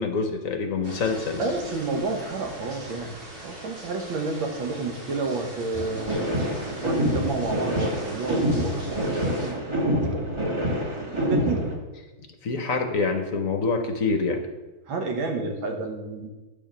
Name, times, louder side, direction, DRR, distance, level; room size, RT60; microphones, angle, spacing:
voice 1, 0.0-1.5 12.4-14.4, left 4 dB, 60° left, 5 dB, 0.9 m, -26 dB
sound 1, 0.8-9.5, right 1 dB, 60° right, 2.8 m, -40 dB
voice 2, 1.4-3.1 3.4-6.5 6.8-10.6 11.1-11.7 14.9-16.3, right 3 dB, 75° right, 3 dB, 2.0 m, -30 dB
sound 2, 5.7-11.7, equal, 20° right, 0.9 m, -26 dB
9.3 x 5.0 x 6.9 m, 1.2 s
omnidirectional pair, 2.2 m